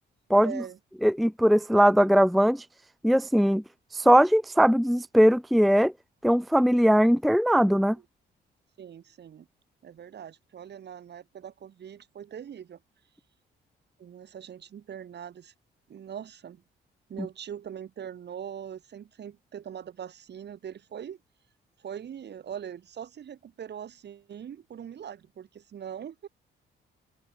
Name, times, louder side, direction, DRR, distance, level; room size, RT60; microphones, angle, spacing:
voice 1, 0.4-0.8 8.8-9.5 9.8-12.8 14.0-15.5 15.9-16.6 17.1-21.2 21.8-26.3, right 9 dB, 60° right, 5.4 m, -41 dB
voice 2, 1.0-2.6 3.0-3.6 3.9-5.9 6.2-8.0, equal, ahead, 0.5 m, -20 dB
open air
cardioid pair, 90°, 20 cm